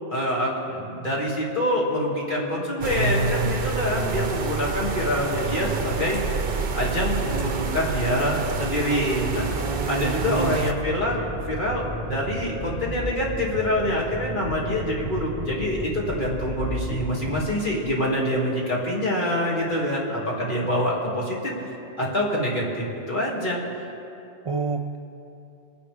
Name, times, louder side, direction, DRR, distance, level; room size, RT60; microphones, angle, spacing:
voice 1, 0.1-21.7 22.0-23.6, equal, 50° left, -5 dB, 2.6 m, -26 dB
sound 1, 2.8-10.7, right 4 dB, 60° right, 1.0 m, -28 dB
voice 2, 9.6-10.5 24.5-25.0, right 4 dB, 45° right, 3 dB, 0.4 m, -28 dB
sound 2, 10.1-17.5, equal, 85° left, 2.0 m, -33 dB
24.5 x 10.0 x 3.5 m, 2.7 s
omnidirectional pair, 1.1 m